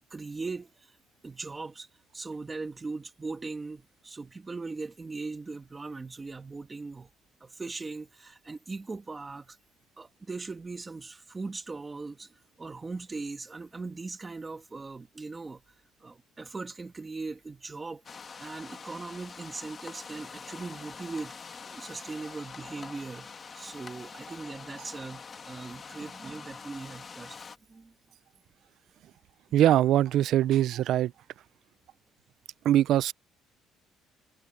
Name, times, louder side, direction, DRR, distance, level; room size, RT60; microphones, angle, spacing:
voice 1, 0.1-0.9 1.2-1.9 2.1-7.1 7.4-9.6 10.0-15.6 16.0-18.0 18.4-21.3 21.7-27.4 27.7-27.9, right 3 dB, 15° right, 1.3 m, -39 dB
sound 1, 18.0-27.6, left 5 dB, 25° left, 1.8 m, -45 dB
voice 2, 29.5-31.1 32.6-33.1, right 12 dB, 60° right, 0.4 m, -22 dB
cardioid pair, 165°, 0 cm